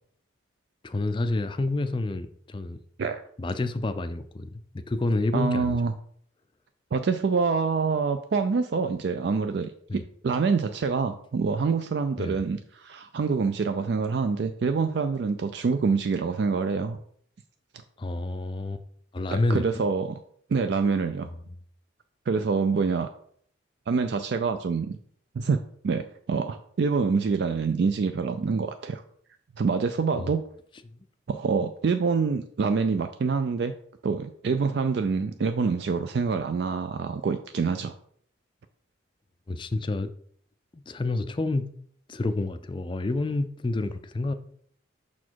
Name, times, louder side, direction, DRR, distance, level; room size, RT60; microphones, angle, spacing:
voice 1, 0.8-2.8 3.4-5.8 9.9-10.0 12.2-12.4 18.0-18.8 19.1-19.8 30.2-30.3 39.5-40.1 40.7-41.7 42.1-44.3, left 2 dB, 25° left, 11 dB, 0.4 m, -29 dB
voice 2, 5.3-5.9 6.9-17.0 19.3-20.2 20.5-21.3 22.3-23.1 23.9-25.0 25.3-29.0 29.6-30.4 31.3-33.7 34.0-37.9, right 5 dB, 60° right, 8 dB, 0.3 m, -26 dB
5.9 x 4.2 x 4.5 m, 0.62 s
head